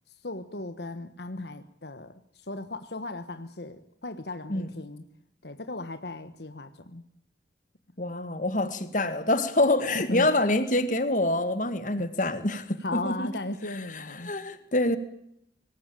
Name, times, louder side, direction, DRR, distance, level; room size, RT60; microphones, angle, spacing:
voice 1, 0.2-5.0 5.4-7.0 10.1-10.3 12.0-12.1 12.8-14.3, left 2 dB, 65° left, 9 dB, 1.4 m, -37 dB
voice 2, 8.0-13.3 13.7-15.0, left 2 dB, 45° left, 11 dB, 2.1 m, -26 dB
26.0 x 19.0 x 9.0 m, 0.76 s
head